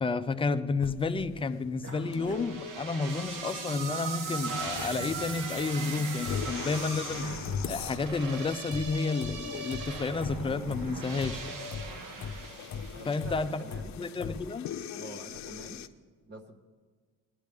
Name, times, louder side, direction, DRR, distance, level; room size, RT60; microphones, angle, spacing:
voice 1, 0.0-7.4 7.7-11.5 13.0-13.6 14.0-14.7, left 4 dB, 20° left, 10 dB, 0.3 m, -31 dB
sound 1, 0.8-15.9, left 7 dB, 60° left, 0.6 m, -41 dB
sound 2, 1.8-3.3 3.7-8.3, equal, 65° right, 2.6 m, -48 dB
sound 3, 2.1-13.4, right 4 dB, 85° right, 1.2 m, -39 dB
voice 2, 12.9-13.9 14.9-15.8 16.3-16.6, right 2 dB, 35° right, 4 dB, 0.9 m, -46 dB
19.0 x 10.5 x 3.5 m, 1.5 s
cardioid pair, 170°, 32 cm